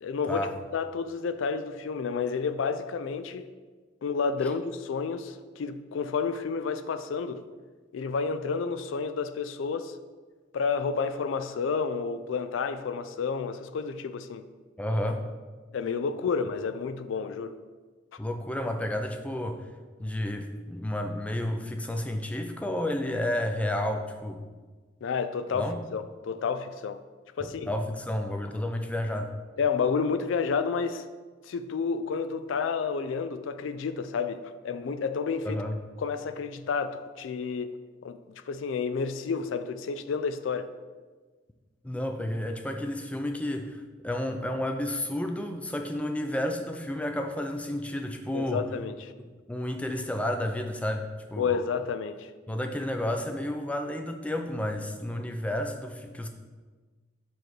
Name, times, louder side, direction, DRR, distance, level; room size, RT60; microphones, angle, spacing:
voice 1, 0.0-0.5 0.7-3.5 4.0-7.4 7.9-9.9 10.5-14.5 15.7-17.6 25.0-27.0 27.4-27.7 29.6-31.0 31.5-35.6 36.0-38.2 38.5-40.7 48.3-49.1 51.4-52.3, left 5 dB, 75° left, 10 dB, 0.4 m, -30 dB
voice 2, 14.8-15.2 18.2-19.7 20.0-24.4 25.5-25.8 27.4-29.3 35.4-35.8 41.8-48.7 49.5-51.5 52.5-56.3, left 1 dB, 5° left, 4 dB, 0.4 m, -31 dB
7.1 x 3.2 x 5.9 m, 1.4 s
head